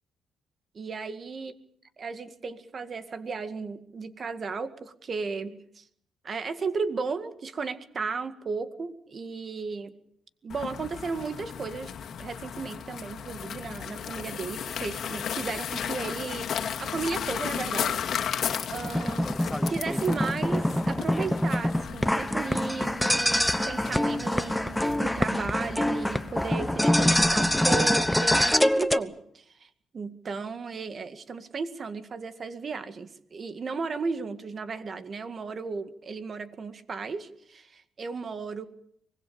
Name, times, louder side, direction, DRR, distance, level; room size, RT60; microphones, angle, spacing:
voice 1, 0.7-1.5 2.0-5.8 6.2-9.9 10.4-11.9 12.2-16.5 16.8-18.3 18.7-19.3 19.7-29.7 29.9-38.6, right 4 dB, 45° right, 10 dB, 2.0 m, -35 dB
sound 1, 10.5-27.0, left 8 dB, 65° left, 2.3 m, -35 dB
sound 2, 18.7-29.0, left 1 dB, 5° left, 1.0 m, -25 dB
24.5 x 20.5 x 7.1 m, 0.70 s
cardioid pair, 90°, 0 cm